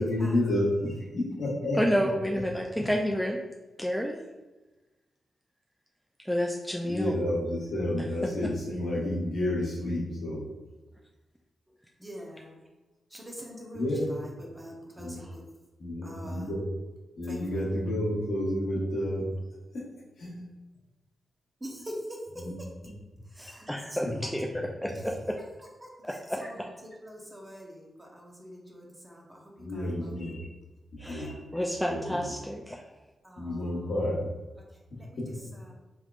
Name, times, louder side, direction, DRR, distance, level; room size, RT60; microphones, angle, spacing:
voice 1, 0.0-1.8 6.9-10.4 13.7-14.2 15.0-15.2 15.8-16.7 17.2-19.3 19.7-19.8 20.2-20.5 22.4-22.5 29.6-30.5 31.1-31.3 31.9-32.3 33.4-34.3, left 1 dB, 70° left, 1.0 m, -30 dB
voice 2, 1.7-3.4 3.8-4.2 6.2-7.1 8.0-8.1 8.4-8.5 23.4-25.4 26.0-26.7 31.0-32.8, equal, ahead, 0.4 m, -30 dB
voice 3, 12.0-12.6 13.1-15.5 16.0-16.5 17.2-17.6 21.6-22.7 23.3-24.0 25.8-25.9 26.4-26.6 27.0-30.3 31.0-31.7 33.2-33.9 34.6-34.7 35.0-35.7, equal, 20° right, 0.8 m, -45 dB
3.4 x 3.1 x 2.4 m
cardioid pair, 60°, 0 cm